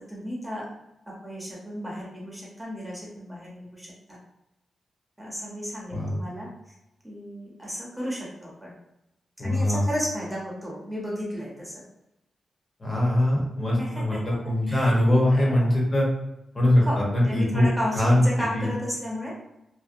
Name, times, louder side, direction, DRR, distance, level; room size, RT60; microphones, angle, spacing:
voice 1, 0.1-0.7 1.1-4.2 5.2-6.8 7.0-8.7 9.4-11.8 13.8-15.0 15.3-15.8 16.8-19.3, equal, 5° right, -4 dB, 0.7 m, -34 dB
voice 2, 9.4-9.8 12.8-16.1 16.5-16.8 17.1-17.7 17.9-18.3 18.5-18.7, left 1 dB, 35° left, -3 dB, 0.7 m, -22 dB
2.6 x 2.1 x 2.4 m, 0.89 s
wide cardioid pair, 105°, 0 cm